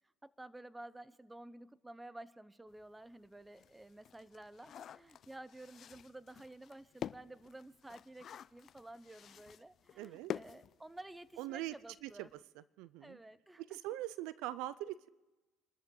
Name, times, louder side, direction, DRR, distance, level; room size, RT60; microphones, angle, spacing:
voice 1, 0.2-12.3 13.0-13.8, right 1 dB, 10° right, 16 dB, 0.8 m, -52 dB
sound 1, 2.8-2.9 3.3-11.4 11.7-11.8 12.1-12.3, left 9 dB, 50° left, 0.4 m, -48 dB
voice 2, 10.0-10.3 11.4-11.7 12.0-12.3 12.6-13.2 13.6-15.1, right 15 dB, 80° right, 18 dB, 0.4 m, -42 dB
28.0 x 13.0 x 3.9 m, 1.1 s
supercardioid pair, 85°, 0 cm